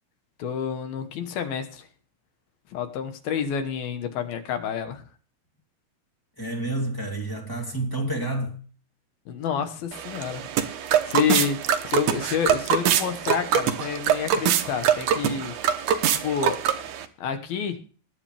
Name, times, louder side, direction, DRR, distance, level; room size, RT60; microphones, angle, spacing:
voice 1, 0.4-1.9 2.7-5.0 9.3-10.5 10.8-15.6 16.1-16.6 17.2-17.8, left 7 dB, 65° left, 2.8 m, -29 dB
voice 2, 6.4-8.6 15.3-15.4, right 2 dB, 10° left, 1.6 m, -29 dB
sound 1, 9.9-17.0, right 9 dB, 90° right, 1.7 m, -24 dB
21.5 x 8.3 x 3.4 m
omnidirectional pair, 5.0 m